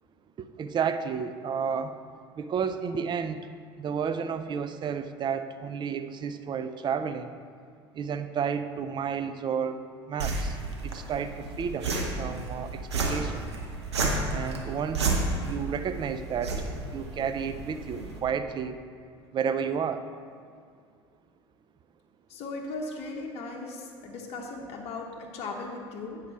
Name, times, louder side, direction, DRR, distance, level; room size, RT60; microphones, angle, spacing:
voice 1, 0.4-2.0 2.4-3.5 3.8-7.3 7.9-9.8 10.1-10.6 10.8-13.5 14.3-18.8 19.3-20.1, right 7 dB, 35° right, 10 dB, 0.5 m, -31 dB
sound 1, 10.2-18.2, right 3 dB, 85° right, 1.0 m, -32 dB
voice 2, 22.3-26.2, left 3 dB, 50° left, 0 dB, 1.0 m, -37 dB
8.2 x 5.0 x 5.7 m, 2.2 s
hypercardioid pair, 70°, 14 cm